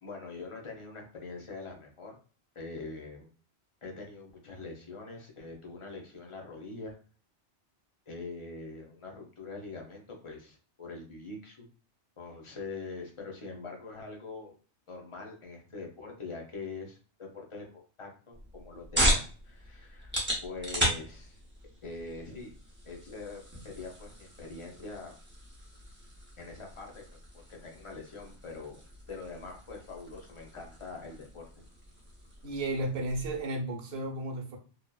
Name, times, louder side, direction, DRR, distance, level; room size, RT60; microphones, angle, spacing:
voice 1, 0.0-2.2 2.5-3.3 3.8-7.0 8.1-11.7 12.2-14.6 14.9-20.1 20.4-21.4 21.8-22.5 22.8-25.2 26.4-28.8 29.1-31.5, left 3 dB, 35° left, 1 dB, 0.5 m, -43 dB
sound 1, 18.3-33.4, right 1 dB, 15° right, 0.6 m, -36 dB
voice 2, 32.4-34.6, right 1 dB, 70° right, 1 dB, 0.9 m, -33 dB
2.7 x 2.0 x 2.3 m, 0.38 s
omnidirectional pair, 1.1 m